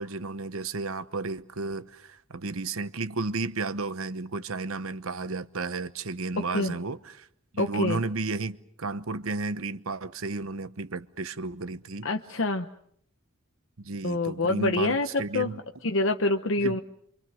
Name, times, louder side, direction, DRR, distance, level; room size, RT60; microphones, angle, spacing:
voice 1, 0.0-7.3 7.5-12.1 13.8-15.6 16.6-16.8, right 3 dB, 70° right, 1.0 m, -33 dB
voice 2, 6.4-6.7 7.6-8.0 12.0-12.7 14.0-15.5 15.8-16.8, left 2 dB, 60° left, 0.9 m, -26 dB
27.5 x 25.0 x 6.4 m
head